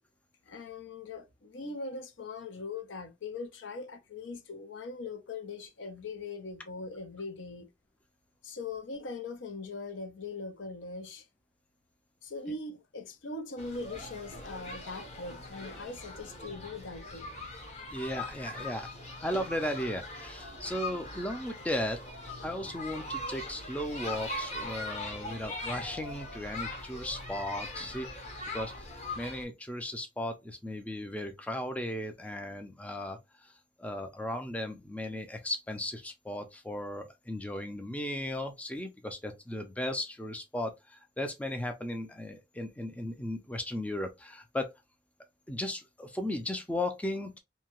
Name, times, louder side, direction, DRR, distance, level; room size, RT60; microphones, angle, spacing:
voice 1, 0.5-7.7 8.4-11.3 12.2-17.3, left 3 dB, 85° left, 0.6 m, -41 dB
sound 1, 13.6-29.4, left 2 dB, 35° left, 0.8 m, -41 dB
voice 2, 17.9-18.9 19.2-22.0 22.4-28.3 28.5-28.9 29.2-33.5 33.8-44.7 45.5-47.4, left 1 dB, 10° left, 0.3 m, -36 dB
2.7 x 2.2 x 2.9 m
head